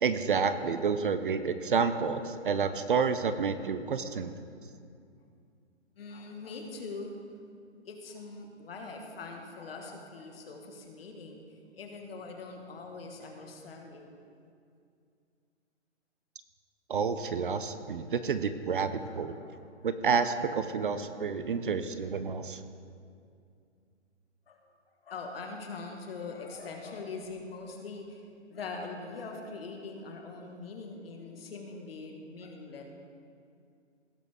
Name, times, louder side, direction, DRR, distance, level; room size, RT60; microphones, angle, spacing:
voice 1, 0.0-4.3 16.9-19.3 19.8-22.6, right 5 dB, 45° right, 11 dB, 0.5 m, -29 dB
voice 2, 3.6-4.0 6.0-7.2 7.8-14.3 19.0-19.6 20.7-20.9 24.5-24.6 25.0-32.8, left 3 dB, 55° left, 2 dB, 1.7 m, -43 dB
17.5 x 6.2 x 3.6 m, 2.4 s
hypercardioid pair, 165°, 36 cm